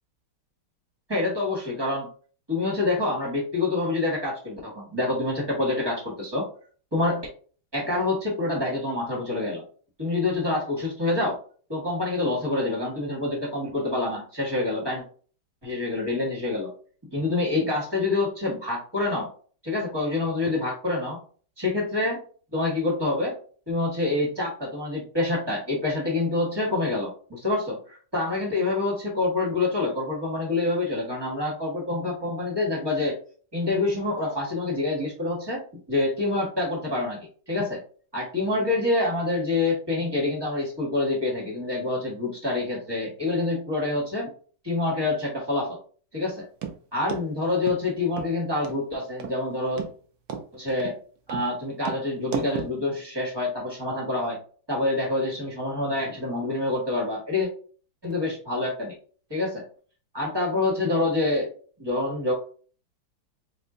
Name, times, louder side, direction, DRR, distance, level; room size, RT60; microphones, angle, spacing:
voice 1, 1.1-2.1 2.5-6.5 6.9-7.3 7.7-9.6 10.0-11.4 11.7-15.0 15.6-16.7 17.1-19.3 19.6-21.2 21.6-22.2 22.5-23.3 23.7-33.2 33.5-35.6 35.9-37.8 38.1-44.3 44.6-45.8 46.1-46.4 46.9-49.8 50.5-50.9 51.3-54.4 54.7-57.5 58.0-58.9 59.3-59.6 60.1-61.5 61.8-62.3, left 2 dB, 20° right, -4 dB, 0.7 m, -26 dB
sound 1, 46.6-46.8 47.1-47.2 47.7-47.8 48.2-48.3 48.6-48.8 49.2-49.4 49.8-49.9 50.3-50.4 50.8-51.0 51.3-51.5 51.8-52.0 52.3-52.7, right 7 dB, 90° right, 0.8 m, -33 dB
3.6 x 2.1 x 3.7 m, 0.42 s
omnidirectional pair, 2.4 m